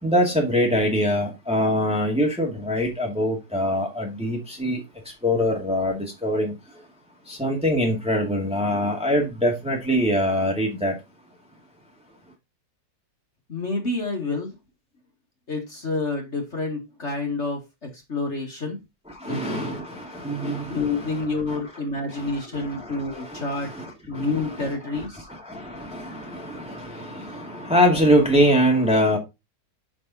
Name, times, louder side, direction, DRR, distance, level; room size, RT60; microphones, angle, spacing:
voice 1, 0.0-4.8 5.2-6.6 7.3-10.9 19.1-21.6 22.1-29.2, equal, 5° right, 2.0 m, -24 dB
voice 2, 13.5-14.5 15.5-17.6 18.1-18.8 19.3-19.8 20.7-23.7 24.1-25.3, left 3 dB, 40° left, 2.1 m, -28 dB
6.8 x 6.4 x 4.1 m
omnidirectional pair, 1.9 m